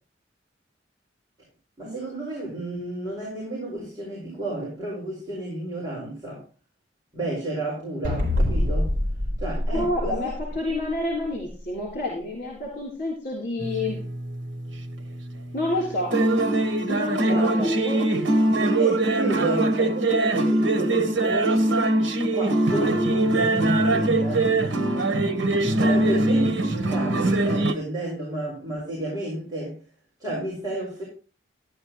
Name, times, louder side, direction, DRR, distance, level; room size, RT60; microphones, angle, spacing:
voice 1, 1.8-6.4 7.1-8.9 9.4-10.1 17.3-17.5 18.8-21.7 22.3-24.5 25.6-29.8 30.2-31.0, right 2 dB, 20° right, -6 dB, 5.3 m, -31 dB
sound 1, 8.0-10.7, left 1 dB, 50° right, 3.6 m, -25 dB
voice 2, 9.7-14.0 15.5-16.2 16.8-18.1, left 1 dB, 50° left, -2 dB, 3.7 m, -29 dB
sound 2, 13.6-27.7, right 2 dB, 80° right, 1.3 m, -23 dB
13.0 x 11.0 x 3.1 m, 0.36 s
head